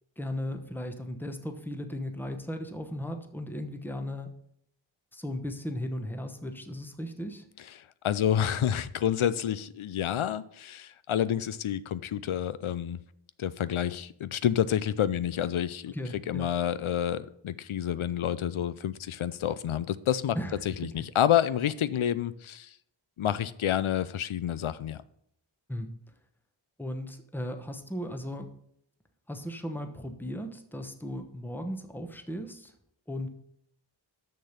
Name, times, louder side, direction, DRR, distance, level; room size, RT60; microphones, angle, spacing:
voice 1, 0.2-4.3 5.1-7.5 15.9-16.5 20.3-20.6 25.7-25.9 26.8-28.5 29.3-32.7 33.1-33.3, left 1 dB, 5° left, 6 dB, 1.0 m, -36 dB
voice 2, 8.0-13.0 13.4-20.4 20.7-22.7 23.2-25.0, left 10 dB, 80° left, 16 dB, 0.6 m, -29 dB
6.7 x 6.4 x 5.7 m, 0.72 s
wide cardioid pair, 45°, 48 cm